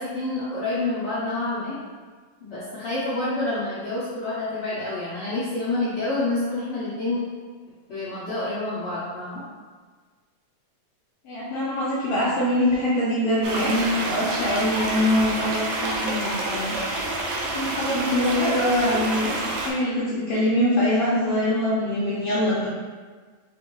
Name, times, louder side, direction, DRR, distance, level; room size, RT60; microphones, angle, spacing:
voice 1, 0.0-1.8 2.4-7.2 7.9-9.4, left 2 dB, 60° left, -12 dB, 1.5 m, -28 dB
voice 2, 11.2-16.8 17.5-19.4 19.7-22.7, left 1 dB, 85° left, -9 dB, 1.4 m, -23 dB
sound 1, 13.4-19.7, right 2 dB, 75° right, 1.7 m, -28 dB
6.3 x 2.8 x 3.0 m, 1.5 s
omnidirectional pair, 3.9 m